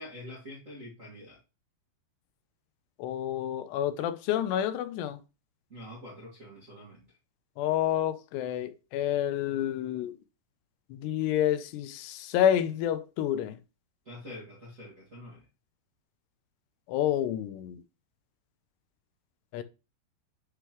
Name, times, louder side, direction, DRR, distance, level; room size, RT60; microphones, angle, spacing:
voice 1, 0.0-1.4 5.7-7.1 14.0-15.4, left 1 dB, 45° right, 0.9 m, -45 dB
voice 2, 3.0-5.2 7.6-10.1 10.9-13.6 16.9-17.8 19.5-19.6, left 10 dB, 90° left, 2.8 m, -29 dB
9.9 x 3.8 x 3.0 m
omnidirectional pair, 4.7 m